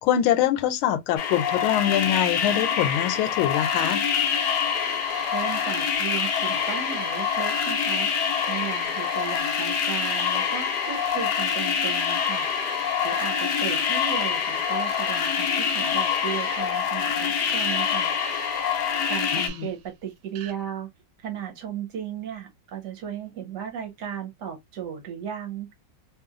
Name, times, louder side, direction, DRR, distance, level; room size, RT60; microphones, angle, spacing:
voice 1, 0.0-4.0 19.3-19.5, left 11 dB, 90° left, 1.4 m, -24 dB
sound 1, 1.2-19.5, left 8 dB, 70° left, 1.0 m, -26 dB
sound 2, 3.5-19.9 20.3-20.5, right 9 dB, 85° right, 1.4 m, -40 dB
voice 2, 5.3-8.1 8.4-12.5 13.0-18.1 18.8-20.9 21.2-25.8, right 8 dB, 65° right, 1.2 m, -35 dB
2.9 x 2.9 x 2.4 m
omnidirectional pair, 2.2 m